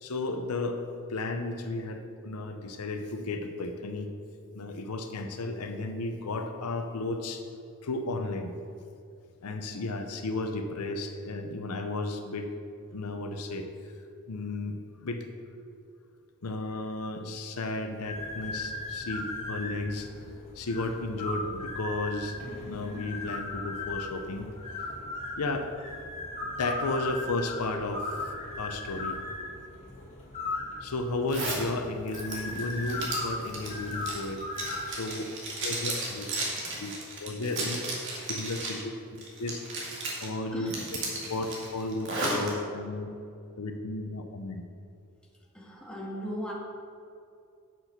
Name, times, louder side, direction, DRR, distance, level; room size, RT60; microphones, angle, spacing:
voice 1, 0.0-0.8 1.1-4.1 4.5-7.4 7.8-8.5 9.4-12.5 12.9-13.9 14.3-15.3 16.4-20.1 20.5-22.4 22.6-24.5 25.4-25.7 26.4-29.2 30.8-34.4 34.9-35.3 35.6-36.3 36.8-36.9 37.2-39.6 40.2-40.8 41.3-43.1 43.6-44.6, left 2 dB, 85° left, 6 dB, 0.7 m, -34 dB
sound 1, 17.9-34.9, left 2 dB, 30° left, 2.2 m, -37 dB
Zipper (clothing), 31.3-31.6 32.1-38.8 39.2-40.3 40.7-42.5, right 2 dB, 55° right, 2.1 m, -34 dB
voice 2, 45.5-46.5, equal, 5° left, -4 dB, 1.6 m, -37 dB
8.0 x 6.2 x 6.0 m, 2.6 s
head